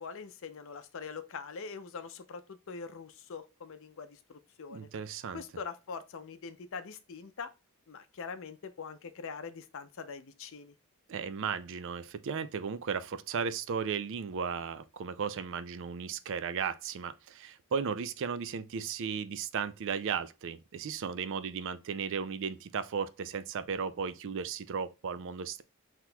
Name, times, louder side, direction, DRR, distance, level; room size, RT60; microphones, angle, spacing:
voice 1, 0.0-4.9 5.3-7.5 7.9-10.7, left 5 dB, 65° left, 0.5 m, -43 dB
voice 2, 4.7-5.4 11.1-25.6, right 6 dB, 60° right, 0.4 m, -35 dB
5.8 x 2.9 x 2.2 m
head